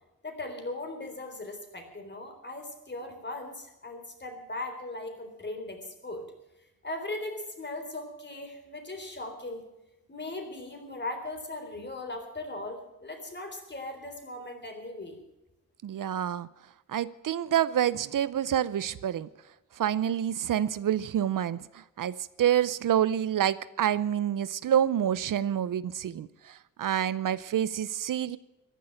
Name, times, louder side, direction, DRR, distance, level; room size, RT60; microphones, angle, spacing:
voice 1, 0.2-6.3 6.8-9.6 10.1-15.2, left 2 dB, 30° left, 6 dB, 3.9 m, -38 dB
voice 2, 15.8-16.5 16.9-19.3 19.8-21.6 22.0-28.4, right 10 dB, 65° right, 17 dB, 0.6 m, -27 dB
14.5 x 11.0 x 7.7 m, 0.96 s
cardioid pair, 90°, 34 cm